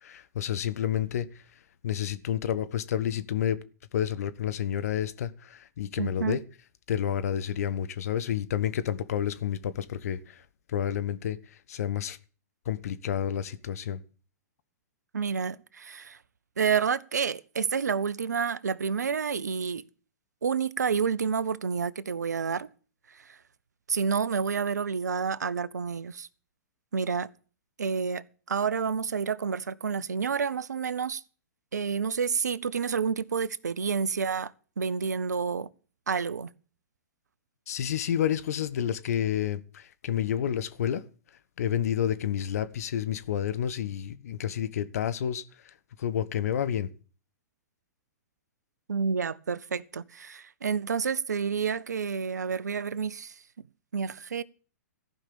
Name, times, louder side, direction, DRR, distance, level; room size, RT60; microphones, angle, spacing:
voice 1, 0.0-1.3 1.8-3.6 3.9-6.4 6.9-10.4 10.7-11.4 11.7-12.2 12.7-14.0 37.7-41.0 41.6-45.4 46.0-46.9, left 10 dB, 65° left, 1.0 m, -29 dB
voice 2, 6.0-6.4 15.1-16.2 16.6-19.8 20.4-22.7 23.1-23.4 23.9-26.3 26.9-27.3 27.8-31.2 31.7-34.5 34.8-35.7 36.1-36.5 48.9-53.3 53.9-54.4, right 6 dB, 80° right, 0.7 m, -29 dB
14.5 x 5.7 x 8.5 m
hypercardioid pair, 115°, 9 cm